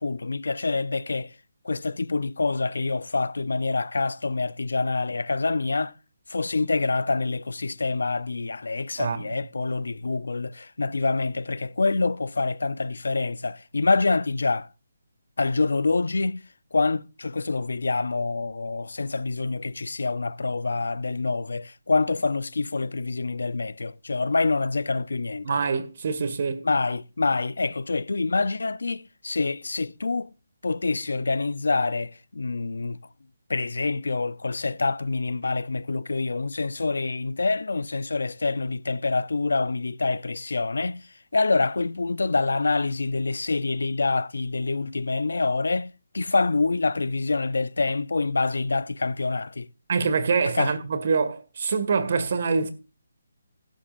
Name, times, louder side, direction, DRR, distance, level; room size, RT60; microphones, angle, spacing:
voice 1, 0.0-1.4 1.6-5.9 6.3-14.7 15.4-16.4 16.7-25.6 26.6-30.3 30.6-33.0 33.5-49.7 50.5-50.7, left 3 dB, 85° left, 0.6 m, -26 dB
voice 2, 9.0-9.3 25.4-26.7 49.9-52.7, right 5 dB, 50° right, 1.8 m, -25 dB
15.5 x 11.5 x 2.5 m
hypercardioid pair, 165°, 0 cm